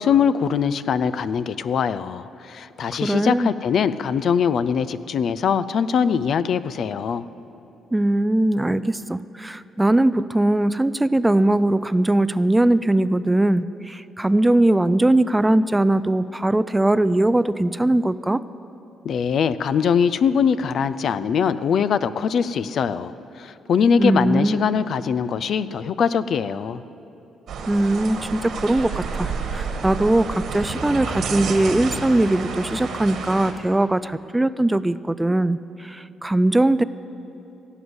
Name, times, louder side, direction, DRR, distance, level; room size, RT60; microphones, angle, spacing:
voice 1, 0.0-7.2 19.0-23.1 23.4-26.8, left 7 dB, 60° left, 13 dB, 0.4 m, -22 dB
voice 2, 3.0-3.5 7.9-18.4 24.0-24.7 27.7-36.8, right 1 dB, 10° right, 16 dB, 0.3 m, -20 dB
sound 1, 27.5-33.5, right 4 dB, 70° right, 1.7 m, -30 dB
17.0 x 8.0 x 7.9 m, 2.9 s
cardioid pair, 90°, 0 cm